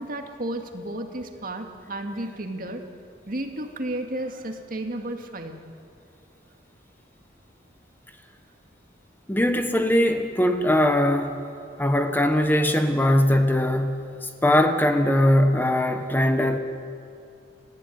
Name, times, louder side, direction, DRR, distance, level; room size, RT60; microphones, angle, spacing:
voice 1, 0.0-2.8 3.3-5.6, right 1 dB, 50° right, 4 dB, 2.1 m, -32 dB
voice 2, 9.3-11.4 11.8-14.1 14.4-16.6, left 1 dB, 10° left, 6 dB, 1.1 m, -21 dB
29.5 x 14.0 x 9.4 m, 2.4 s
head